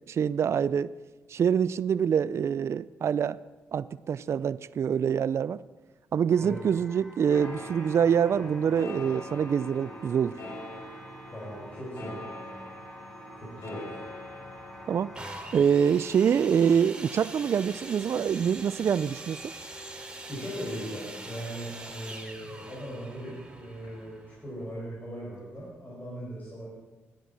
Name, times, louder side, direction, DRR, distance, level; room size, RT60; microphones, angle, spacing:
voice 1, 0.1-0.9 1.3-3.4 3.7-5.6 6.1-10.4 14.9-15.1 15.5-19.4, right 7 dB, 60° right, 18 dB, 0.4 m, -25 dB
sound 1, 6.3-16.8, equal, 5° left, 2.4 m, -52 dB
sound 2, 7.3-22.4 22.8-24.2 24.4-24.5, left 1 dB, 70° left, 6.3 m, -45 dB
voice 2, 11.3-12.6 13.3-14.0 20.3-26.6, equal, 30° left, -6 dB, 6.2 m, -39 dB
sound 3, 15.1-24.8 25.6-25.7, right 2 dB, 20° right, 3.0 m, -43 dB
13.5 x 10.5 x 7.7 m, 1.2 s
supercardioid pair, 55°, 5 cm